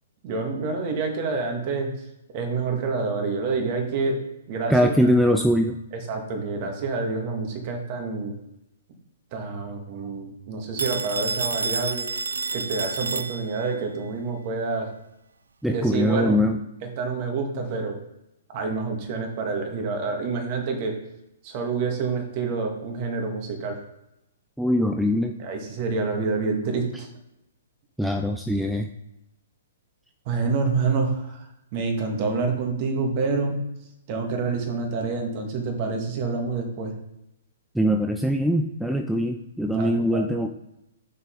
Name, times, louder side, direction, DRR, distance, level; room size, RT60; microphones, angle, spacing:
voice 1, 0.2-1.9 2.3-4.2 4.5-4.9 5.9-8.3 9.3-12.1 12.5-14.9 15.7-16.4 16.8-18.0 18.5-21.0 21.4-23.8 25.4-27.1 30.3-31.5 31.7-33.6 34.1-36.9 39.7-40.3, right 4 dB, 40° right, 2 dB, 2.1 m, -27 dB
voice 2, 4.7-5.8 15.6-16.6 24.6-25.4 28.0-28.9 37.7-40.5, equal, ahead, 4 dB, 0.4 m, -22 dB
Telephone, 10.8-13.8, right 4 dB, 70° right, 0.3 m, -29 dB
6.5 x 6.5 x 4.0 m, 0.88 s
figure-of-eight pair, 120°, 0 cm